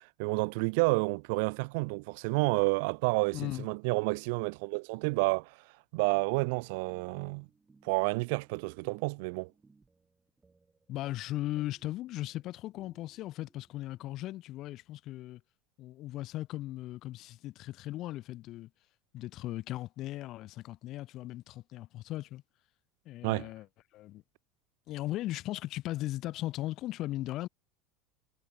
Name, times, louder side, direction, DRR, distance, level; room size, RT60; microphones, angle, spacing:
voice 1, 0.0-5.5 5.9-7.5 7.8-9.5 23.2-23.5, right 30 dB, 65° right, 0.5 m, -30 dB
voice 2, 3.3-3.7 10.9-15.4 15.8-18.7 19.1-22.4 23.0-23.7 23.9-24.2 24.9-27.5, left 15 dB, 40° left, 0.9 m, -37 dB
sound 1, 6.0-14.3, right 4 dB, 10° right, 4.6 m, -66 dB
supercardioid pair, 155°, 0 cm